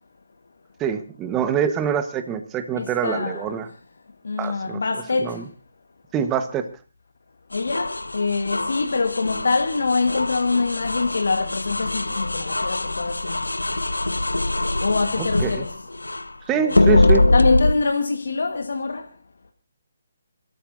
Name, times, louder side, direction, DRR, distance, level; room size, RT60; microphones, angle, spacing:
voice 1, 0.8-3.7 4.4-4.8 5.2-5.4 6.1-6.7 15.4-15.6 16.5-17.3, right 8 dB, 15° right, 1.3 m, -25 dB
voice 2, 2.7-3.6 4.2-5.4 7.5-13.4 14.8-15.8 16.5-16.8 17.3-19.1, left 4 dB, 70° left, 1.5 m, -24 dB
sound 1, 7.5-16.3 16.7-17.7, left 2 dB, 90° left, 0.9 m, -23 dB
28.0 x 13.5 x 2.7 m
figure-of-eight pair, 145°, 0 cm